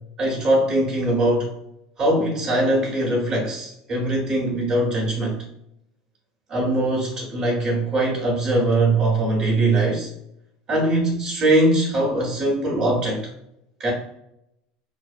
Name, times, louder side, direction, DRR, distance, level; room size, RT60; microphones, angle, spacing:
voice 1, 0.2-1.5 2.0-5.4 6.5-10.1 10.7-13.2 13.8-13.9, right 1 dB, 40° right, -5 dB, 0.9 m, -21 dB
2.6 x 2.0 x 2.4 m, 0.79 s
supercardioid pair, 105°, 3 cm